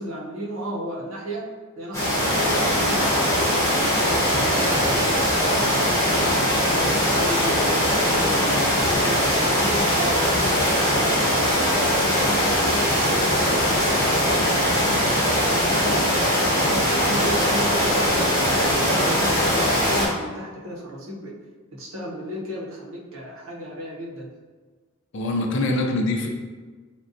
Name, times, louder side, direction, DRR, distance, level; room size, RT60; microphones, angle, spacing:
voice 1, 0.0-1.5 1.8-6.7 7.1-7.7 8.2-13.3 13.7-14.8 15.2-21.4 21.7-24.3, equal, 75° right, -2 dB, 0.7 m, -34 dB
sound 1, 1.9-20.1, equal, 15° left, 0.8 m, -21 dB
voice 2, 25.1-26.3, left 2 dB, 60° left, 2 dB, 0.4 m, -24 dB
3.6 x 2.2 x 2.5 m, 1.4 s
head